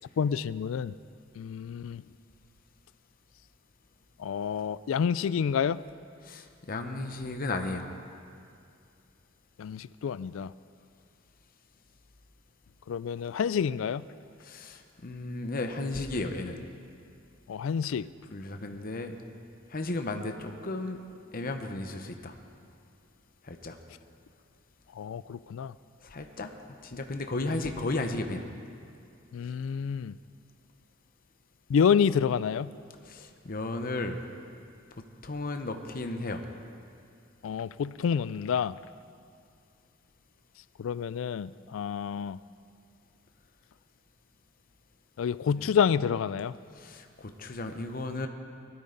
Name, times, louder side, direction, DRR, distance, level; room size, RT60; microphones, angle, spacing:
voice 1, 0.2-0.9 1.4-2.0 4.2-5.8 9.6-10.5 12.9-14.0 17.5-18.1 25.0-25.7 29.3-30.1 31.7-32.7 37.4-38.8 40.8-42.4 45.2-46.5, left 7 dB, 80° left, 18 dB, 0.3 m, -28 dB
voice 2, 6.2-7.9 14.4-16.6 18.3-19.1 19.7-21.0 21.3-22.3 23.4-23.8 26.0-26.5 26.8-28.4 33.0-34.2 35.2-36.4 45.6-45.7 46.7-48.3, left 2 dB, 45° left, 5 dB, 0.9 m, -34 dB
19.5 x 13.0 x 3.9 m, 2.4 s
head